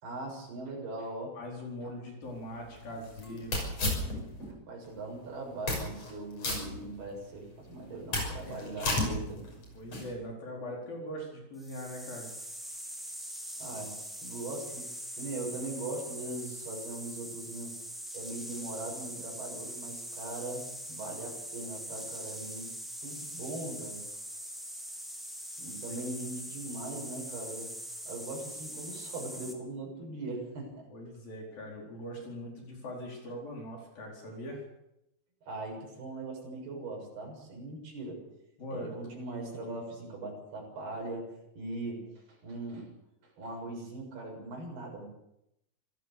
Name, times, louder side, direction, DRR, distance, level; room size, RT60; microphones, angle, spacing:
voice 1, 0.0-1.4 4.5-9.4 13.6-14.9 15.2-17.7 18.1-22.7 23.0-24.1 25.6-27.7 28.1-30.9 35.5-38.2 38.7-41.3 41.6-42.9 43.4-45.1, right 2 dB, 75° right, -1 dB, 8.9 m, -40 dB
voice 2, 1.3-3.6 8.4-8.8 9.7-12.3 25.9-26.0 30.9-34.6 38.6-39.1, equal, 65° left, -1 dB, 6.3 m, -41 dB
sound 1, 2.2-4.5 4.9-5.0 5.5-6.1 6.4-7.3 7.7-10.1, left 2 dB, 40° left, 6.9 m, -34 dB
sound 2, 11.6-29.5, equal, ahead, 3.0 m, -42 dB
26.0 x 16.0 x 6.9 m, 0.83 s
omnidirectional pair, 4.5 m